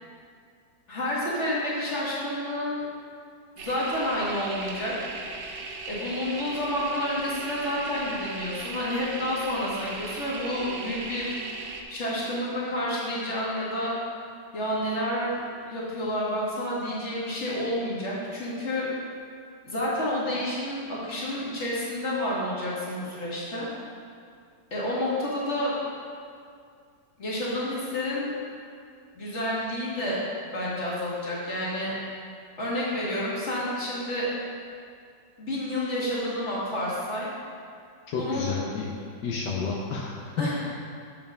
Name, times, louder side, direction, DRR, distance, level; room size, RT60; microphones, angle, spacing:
voice 1, 0.9-2.8 3.6-4.9 5.8-11.4 11.9-13.9 14.5-18.9 19.6-23.7 24.7-25.7 27.2-28.3 29.1-30.2 30.5-31.9 32.6-34.3 35.4-37.3 38.1-38.5 40.4-40.5, left 1 dB, 40° left, -6 dB, 2.0 m, -29 dB
sound 1, 3.6-11.8, right 3 dB, 85° right, 1.4 m, -38 dB
voice 2, 38.1-38.9 39.2-40.3, left 4 dB, 80° left, -2 dB, 1.4 m, -31 dB
7.0 x 5.5 x 5.4 m, 2.3 s
omnidirectional pair, 1.9 m